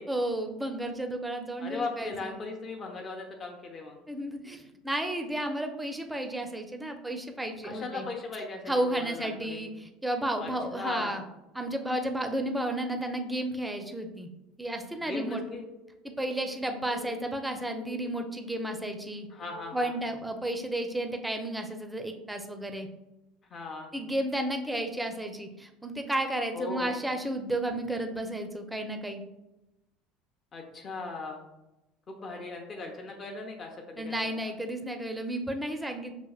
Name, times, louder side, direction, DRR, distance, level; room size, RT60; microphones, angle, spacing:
voice 1, 0.1-2.3 4.1-8.0 8.7-11.2 11.5-14.3 14.6-15.4 16.0-19.3 19.7-22.9 23.9-29.2 34.0-36.2, right 1 dB, 5° right, 5 dB, 0.6 m, -32 dB
voice 2, 1.6-4.0 7.6-9.7 10.4-11.2 15.0-15.6 19.3-19.9 23.5-23.9 26.5-26.9 30.5-31.4 32.1-34.2, left 3 dB, 35° left, 1 dB, 0.7 m, -38 dB
sound 1, 15.2-20.1, left 5 dB, 70° left, 0.3 m, -49 dB
6.0 x 2.8 x 2.4 m, 0.95 s
figure-of-eight pair, 70°, 0 cm